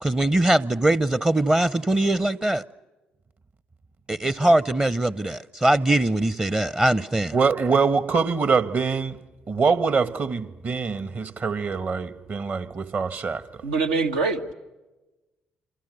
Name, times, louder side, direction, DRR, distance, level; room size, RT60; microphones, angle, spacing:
voice 1, 0.0-2.6 4.1-7.3, right 1 dB, 20° right, 0.8 m, -21 dB
voice 2, 7.3-9.2 9.5-13.4, right 5 dB, 45° right, 1.7 m, -24 dB
voice 3, 13.6-14.5, right 4 dB, 85° right, 1.5 m, -24 dB
27.5 x 27.0 x 6.7 m
hypercardioid pair, 50°, 4 cm